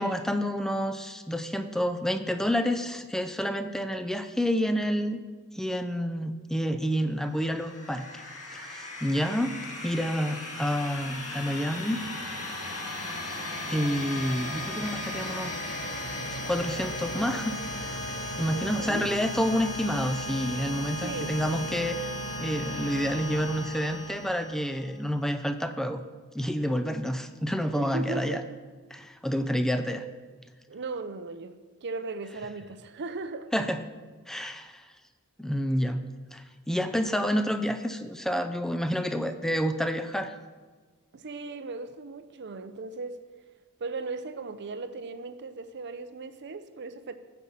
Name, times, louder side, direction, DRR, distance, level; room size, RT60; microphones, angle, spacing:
voice 1, 0.0-5.2 5.5-8.3 8.5-9.5 9.8-12.0 13.3-13.4 13.7-15.5 16.5-17.9 18.4-22.1 22.4-26.0 26.3-28.4 28.9-30.0 33.5-33.8 34.3-34.8 35.4-36.0 36.3-40.3, equal, ahead, 9 dB, 0.5 m, -29 dB
sound 1, 7.3-24.9, left 1 dB, 70° left, 2.2 m, -36 dB
voice 2, 18.5-19.1 21.0-21.4 27.7-28.5 30.7-33.5 41.1-43.2 43.8-47.1, right 3 dB, 50° right, 11 dB, 0.6 m, -37 dB
9.4 x 5.5 x 7.5 m, 1.4 s
head